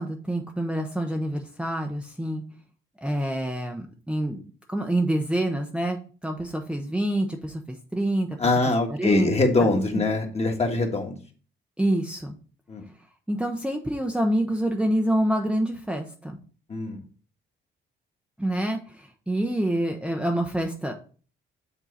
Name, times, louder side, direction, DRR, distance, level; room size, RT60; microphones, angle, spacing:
voice 1, 0.0-2.4 3.0-4.4 4.7-8.3 9.0-9.3 9.6-10.0 11.8-12.4 13.3-16.4 18.4-21.0, right 1 dB, 5° right, 2 dB, 0.7 m, -27 dB
voice 2, 8.4-11.1 12.7-12.8 16.7-17.0, left 2 dB, 30° left, 3 dB, 1.5 m, -23 dB
7.4 x 3.8 x 4.0 m, 0.40 s
cardioid pair, 90°, 20 cm